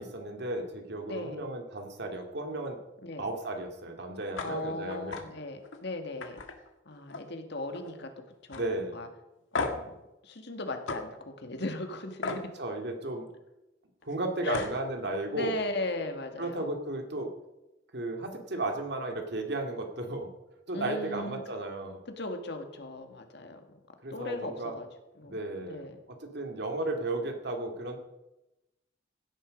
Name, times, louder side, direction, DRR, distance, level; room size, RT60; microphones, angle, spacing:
voice 1, 0.0-2.8 3.2-5.3 8.5-9.0 12.3-13.3 14.0-15.6 16.4-17.3 17.9-20.3 20.7-22.0 24.0-24.7 25.2-28.0, right 2 dB, 60° right, 4 dB, 2.2 m, -34 dB
voice 2, 1.1-1.4 3.0-3.3 4.4-6.4 6.9-8.1 8.5-8.7 8.9-9.1 9.6-9.9 10.2-12.4 14.4-14.7 15.3-16.7 20.7-21.5 22.1-23.8 24.1-24.9 25.2-26.0, left 2 dB, 60° left, 5 dB, 1.9 m, -37 dB
sound 1, 4.3-4.5 4.9-5.2 5.6-5.8 6.2-7.4 7.7-8.1 8.5-8.6 9.5-9.9 10.9-11.0 12.2-12.4 14.1-14.2 14.5-14.8, left 3 dB, 90° left, 1.8 m, -35 dB
16.5 x 10.5 x 5.2 m, 0.96 s
head